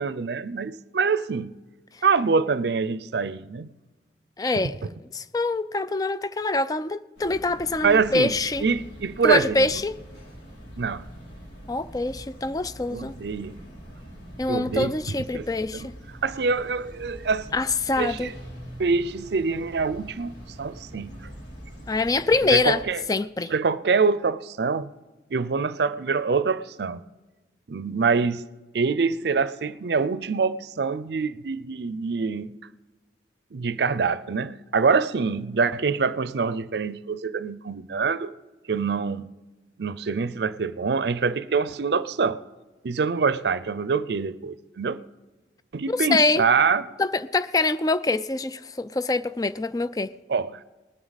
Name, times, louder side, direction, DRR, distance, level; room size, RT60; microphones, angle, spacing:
voice 1, 0.0-1.5 2.0-3.7 7.8-8.3 8.6-9.7 10.8-11.1 12.9-13.6 14.5-15.5 15.7-15.9 16.2-17.6 18.0-18.3 18.8-20.3 20.6-21.2 22.5-23.0 23.5-24.9 25.3-27.0 27.7-28.4 28.7-32.5 33.5-38.3 38.7-39.3 39.8-42.4 42.8-45.0 45.7-46.9 50.3-50.6, right 5 dB, 70° right, 0.5 m, -25 dB
voice 2, 4.4-4.7 5.1-8.6 9.2-10.0 11.7-13.1 14.4-15.9 17.5-18.3 21.9-22.8 23.1-23.5 45.9-46.4 47.0-50.1, left 3 dB, 20° left, 0.3 m, -24 dB
sound 1, 7.2-22.8, equal, 85° left, 3.6 m, -44 dB
20.0 x 9.5 x 4.0 m
head